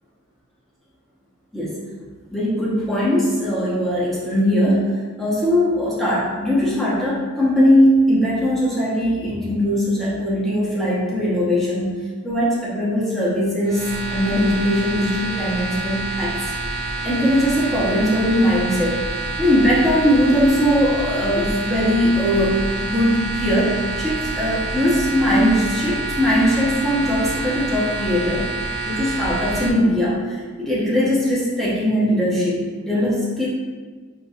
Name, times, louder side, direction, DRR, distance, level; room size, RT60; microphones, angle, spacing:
voice 1, 2.3-4.8 5.2-16.4 17.0-19.0 19.4-28.5 28.8-33.5, equal, ahead, -8 dB, 0.8 m, -20 dB
sound 1, 13.6-29.7, right 3 dB, 45° right, 0.4 m, -27 dB
4.2 x 3.0 x 2.4 m, 1.4 s
head